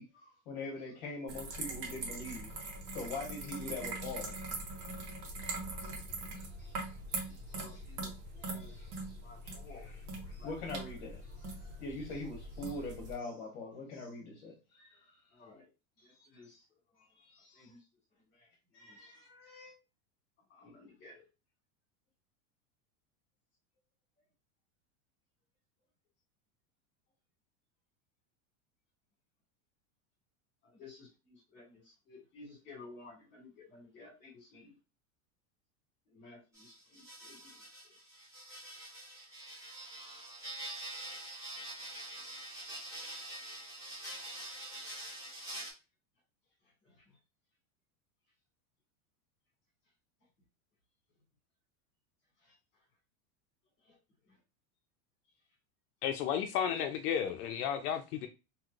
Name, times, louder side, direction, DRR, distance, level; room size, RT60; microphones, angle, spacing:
voice 1, 0.0-2.5 2.9-4.4 5.8-6.0 6.3-7.8 8.4-9.2 9.4-9.9 10.3-15.2 16.0-16.5 17.1-17.7 18.7-19.7, left 2 dB, 40° left, 1.0 m, -44 dB
sound 1, 1.3-13.2, right 2 dB, 80° right, 1.4 m, -42 dB
voice 2, 7.3-8.8 9.2-10.5 15.3-15.7 16.0-16.6 17.0-17.1 17.5-17.8 18.3-19.1 20.5-21.2 30.6-34.8 36.1-37.9 45.0-45.2 46.8-47.2 52.4-52.5 53.8-54.0 54.2-54.4, left 3 dB, 25° left, 1.6 m, -56 dB
sound 2, 36.5-45.7, right 1 dB, 5° right, 0.7 m, -45 dB
voice 3, 56.0-58.3, left 8 dB, 75° left, 0.6 m, -33 dB
3.0 x 3.0 x 2.4 m
supercardioid pair, 175°, 44 cm